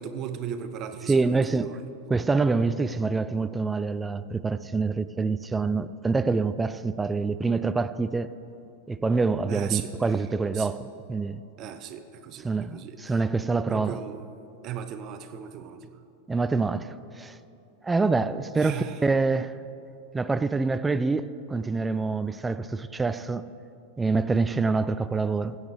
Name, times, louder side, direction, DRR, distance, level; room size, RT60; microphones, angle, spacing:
voice 1, 0.0-1.9 9.5-9.9 10.5-10.7 11.6-13.0 13.7-14.3 14.6-15.9 18.5-19.0, right 9 dB, 35° right, 0.8 m, -36 dB
voice 2, 1.1-1.7 2.1-8.3 8.9-11.4 12.4-14.0 16.3-17.4 17.8-19.5 20.1-23.5 24.0-25.6, right 4 dB, 10° right, 0.4 m, -26 dB
16.0 x 8.1 x 5.0 m
figure-of-eight pair, 90°, 0 cm